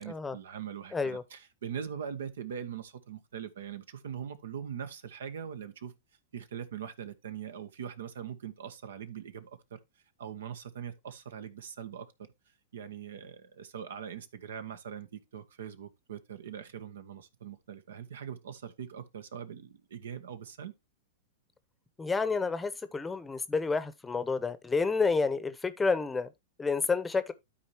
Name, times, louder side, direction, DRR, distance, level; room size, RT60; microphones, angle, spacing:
voice 1, 0.0-5.9 6.3-9.8 10.2-12.1 12.7-20.7, right 8 dB, 80° right, 1.0 m, -42 dB
voice 2, 0.9-1.2 22.0-26.3 26.6-27.3, left 4 dB, 10° left, 0.8 m, -29 dB
12.5 x 4.3 x 2.9 m
hypercardioid pair, 115°, 0 cm